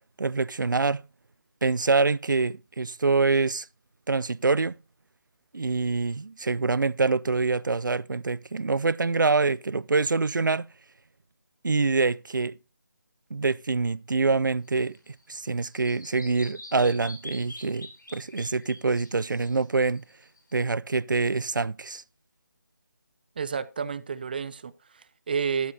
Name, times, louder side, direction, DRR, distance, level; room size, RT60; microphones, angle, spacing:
voice 1, 0.2-1.0 1.6-3.7 4.1-4.7 5.5-10.7 11.6-12.6 13.3-20.0 20.5-22.0, right 4 dB, 90° right, 0.5 m, -25 dB
Bird vocalization bird call bird song, 14.6-20.5, left 1 dB, 85° left, 6.9 m, -46 dB
voice 2, 23.4-25.7, right 6 dB, 30° right, 0.5 m, -31 dB
12.5 x 12.0 x 2.7 m
figure-of-eight pair, 165°, 10 cm